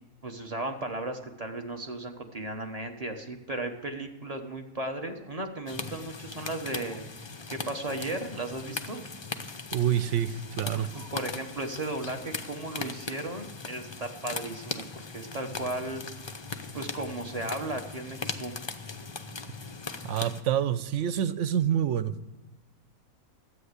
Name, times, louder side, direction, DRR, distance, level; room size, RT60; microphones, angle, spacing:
voice 1, 0.2-7.0 7.5-9.0 10.7-16.0 16.7-18.5, right 2 dB, 25° right, 4 dB, 1.1 m, -35 dB
sound 1, 5.7-20.4, left 4 dB, 40° left, 0.3 m, -39 dB
voice 2, 9.7-10.9 20.0-22.2, right 10 dB, 60° right, 14 dB, 0.9 m, -27 dB
13.0 x 8.7 x 8.1 m, 1.1 s
omnidirectional pair, 1.6 m